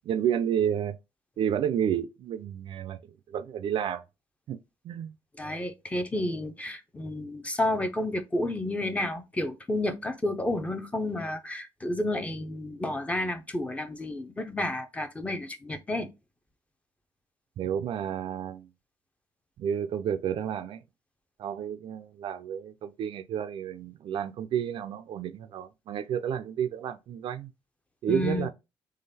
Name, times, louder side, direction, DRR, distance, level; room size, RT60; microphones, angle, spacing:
voice 1, 0.1-1.0 1.4-4.0 4.5-4.6 4.8-5.1 17.6-18.7 19.6-20.8 21.4-27.5 28.0-28.5, right 9 dB, 55° right, 0.4 m, -31 dB
voice 2, 5.4-16.1 28.1-28.5, left 1 dB, 15° left, 0.6 m, -31 dB
3.8 x 3.1 x 4.1 m
cardioid pair, 125°, 10 cm